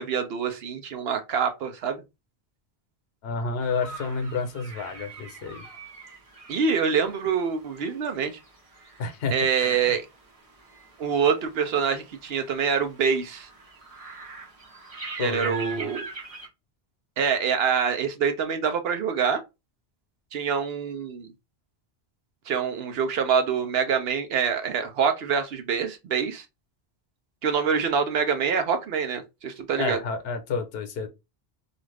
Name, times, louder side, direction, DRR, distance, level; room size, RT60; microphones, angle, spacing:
voice 1, 0.0-2.0 6.5-8.4 9.3-10.1 11.0-13.5 15.2-16.1 17.2-19.4 20.3-21.3 22.5-26.4 27.4-30.0, right 6 dB, 70° right, 0.8 m, -25 dB
voice 2, 3.2-5.6 9.0-9.9 15.2-15.9 29.8-31.1, left 4 dB, 70° left, 0.9 m, -30 dB
sound 1, 3.6-16.5, right 3 dB, 35° right, 1.0 m, -44 dB
2.5 x 2.4 x 3.2 m
omnidirectional pair, 1.1 m